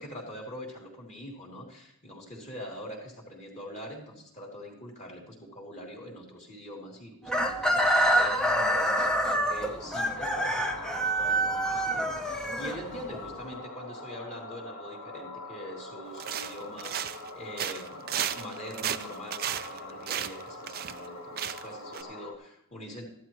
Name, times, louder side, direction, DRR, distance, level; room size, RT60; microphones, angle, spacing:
voice 1, 0.0-9.1 9.5-23.1, left 1 dB, 30° left, -2 dB, 3.2 m, -43 dB
Chicken rooster, 7.3-13.2, right 1 dB, 5° left, 0.9 m, -26 dB
sound 1, 9.2-22.3, left 1 dB, 70° left, 1.9 m, -43 dB
sound 2, 16.2-17.3 17.6-21.1 21.4-21.7 21.9-22.0, right 10 dB, 45° right, 0.5 m, -34 dB
15.0 x 12.0 x 3.1 m, 0.75 s
head